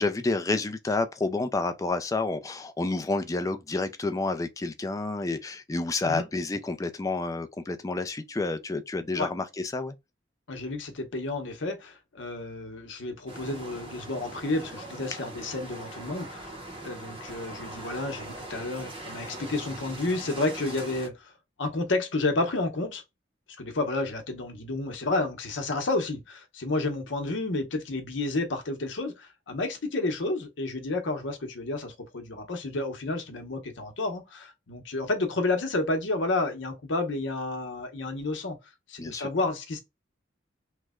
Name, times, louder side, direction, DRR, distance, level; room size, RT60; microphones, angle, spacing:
voice 1, 0.0-10.0 39.0-39.3, left 3 dB, 20° left, 0.4 m, -29 dB
voice 2, 10.5-16.5 16.8-21.3 21.6-23.0 23.6-38.6 38.9-39.8, left 2 dB, 80° left, 0.8 m, -31 dB
sound 1, 13.3-21.1, right 1 dB, 30° right, 0.8 m, -41 dB
3.1 x 2.1 x 3.5 m
head